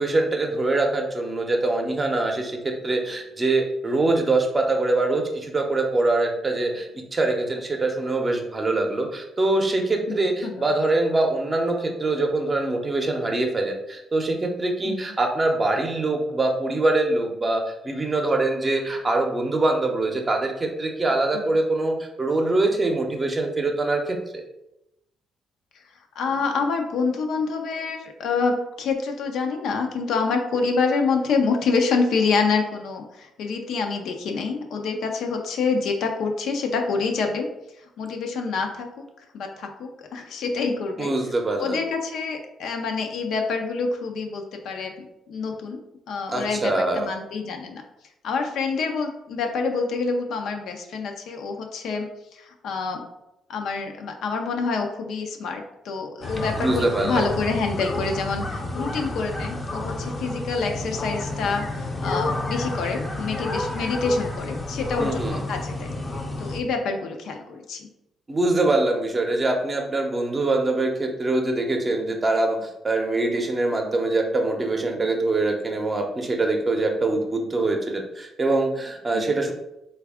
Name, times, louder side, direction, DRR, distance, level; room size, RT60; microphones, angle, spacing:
voice 1, 0.0-24.4 41.0-41.8 46.3-47.1 56.6-57.2 65.0-65.4 68.3-79.5, right 2 dB, 25° right, 2 dB, 0.6 m, -24 dB
voice 2, 10.1-10.6 14.8-15.1 21.3-21.5 26.2-37.5 38.0-39.0 39.3-41.1 41.6-47.8 48.2-52.1 52.3-53.0 53.5-65.9 66.4-67.9 79.1-79.2, left 4 dB, 75° left, 4 dB, 0.5 m, -27 dB
sound 1, 56.2-66.6, left 2 dB, 25° left, 0.5 m, -30 dB
3.3 x 2.3 x 3.5 m, 0.87 s
cardioid pair, 90°, 0 cm